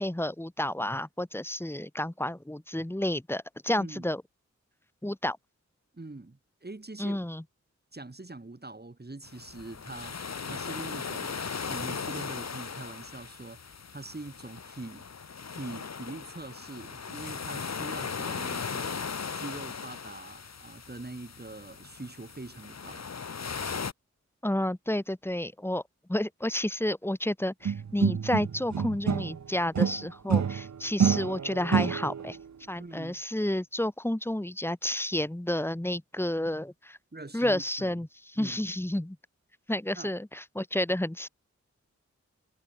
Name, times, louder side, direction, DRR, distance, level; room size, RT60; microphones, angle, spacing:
voice 1, 0.0-4.2 5.0-5.4 7.0-7.4 24.4-25.8 26.1-32.4 32.7-37.0 37.3-39.2 39.7-41.3, left 1 dB, 10° left, 1.5 m, -30 dB
voice 2, 3.8-4.1 5.9-7.2 7.9-10.2 10.5-15.1 15.5-19.0 19.3-23.1 32.8-33.2 37.1-38.0 38.4-38.6 40.0-40.1, right 2 dB, 35° right, 7.2 m, -43 dB
sound 1, 9.2-23.9, left 5 dB, 65° left, 1.5 m, -38 dB
sound 2, 27.6-29.4 29.7-32.3, right 7 dB, 75° right, 1.0 m, -27 dB
wide cardioid pair, 70°, 29 cm